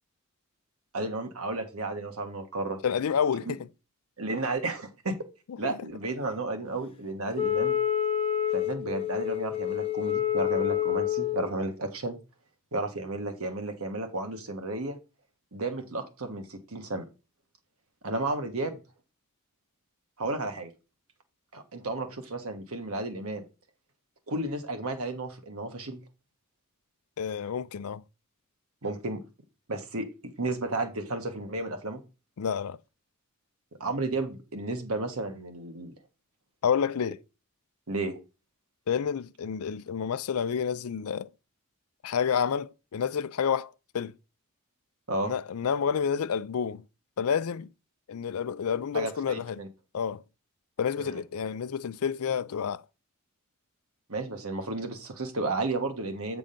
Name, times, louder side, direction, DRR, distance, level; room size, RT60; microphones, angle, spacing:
voice 1, 0.9-2.8 3.5-3.6 4.2-5.2 5.6-7.7 8.5-12.2 12.7-15.0 15.5-17.1 18.0-18.8 20.2-20.7 21.5-23.4 24.3-26.0 28.8-29.2 29.7-32.0 33.8-35.9 37.9-38.2 45.1-45.3 48.9-49.7 51.0-51.2 54.1-56.4, right 2 dB, 70° right, 1.4 m, -33 dB
voice 2, 2.8-3.7 5.6-5.8 27.2-28.0 32.4-32.8 36.6-37.2 38.9-41.3 42.0-44.1 45.2-46.8 47.2-47.7 48.1-49.6 49.9-50.2 50.8-52.8, left 7 dB, 75° left, 0.4 m, -29 dB
Wind instrument woodwind instrument, 7.4-11.5, left 10 dB, 25° left, 0.6 m, -28 dB
8.7 x 3.8 x 5.1 m
head